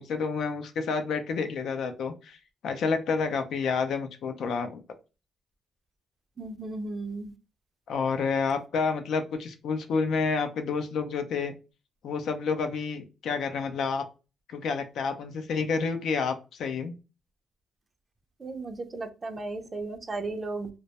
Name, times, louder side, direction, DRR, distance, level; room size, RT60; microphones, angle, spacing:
voice 1, 0.0-2.4 2.6-4.8 7.9-11.5 12.0-14.0 14.5-16.9, left 5 dB, 70° left, 0.4 m, -29 dB
voice 2, 6.4-7.3 18.4-20.7, right 3 dB, 35° right, 0.5 m, -35 dB
2.2 x 2.0 x 2.8 m
supercardioid pair, 75°, 0 cm